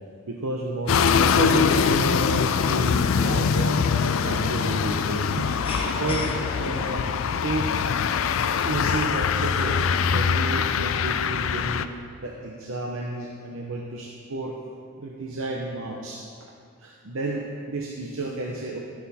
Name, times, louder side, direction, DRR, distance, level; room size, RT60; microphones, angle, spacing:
voice 1, 0.3-5.5 5.8-7.0 7.4-7.7 8.7-9.8 10.1-11.9 12.2-14.6 15.0-16.5 16.8-18.8, right 2 dB, 70° right, 0 dB, 0.8 m, -31 dB
sound 1, 0.8-7.0, left 2 dB, 25° left, 1.1 m, -36 dB
sound 2, 0.9-11.9, left 6 dB, 65° left, 0.4 m, -23 dB
12.0 x 9.6 x 4.2 m, 2.2 s
head